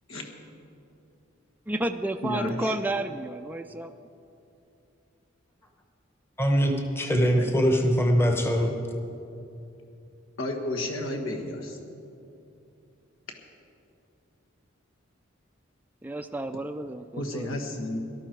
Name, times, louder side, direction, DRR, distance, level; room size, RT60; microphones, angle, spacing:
voice 1, 1.7-3.9 16.0-17.5, right 2 dB, 10° right, 5 dB, 0.3 m, -31 dB
voice 2, 2.2-2.7 7.4-7.5 10.4-11.8 17.1-18.0, left 1 dB, 85° left, 2 dB, 1.6 m, -32 dB
voice 3, 6.4-8.7, equal, 10° left, 3 dB, 1.0 m, -22 dB
18.0 x 12.5 x 4.6 m, 2.7 s
head